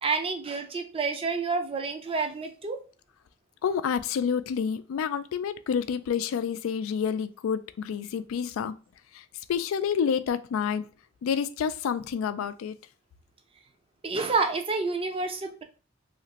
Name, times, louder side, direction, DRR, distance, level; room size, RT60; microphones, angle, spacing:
voice 1, 0.0-2.8 14.0-15.6, right 4 dB, 25° right, 0.5 m, -29 dB
voice 2, 3.6-8.7 9.1-10.9 11.2-12.8, left 7 dB, 75° left, 0.3 m, -29 dB
2.9 x 2.4 x 2.9 m
head